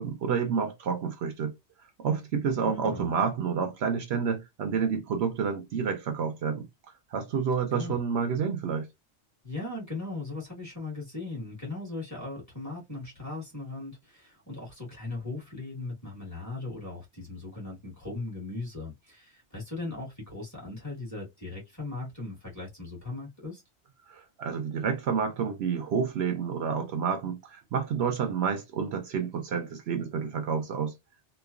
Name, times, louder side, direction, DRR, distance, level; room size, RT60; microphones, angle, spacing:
voice 1, 0.0-1.5 2.0-6.7 7.1-8.9 24.1-30.9, right 6 dB, 70° right, 0.8 m, -29 dB
voice 2, 2.6-3.1 7.7-8.0 9.4-23.6, left 3 dB, 15° left, 1.4 m, -38 dB
3.1 x 2.1 x 2.3 m
omnidirectional pair, 1.2 m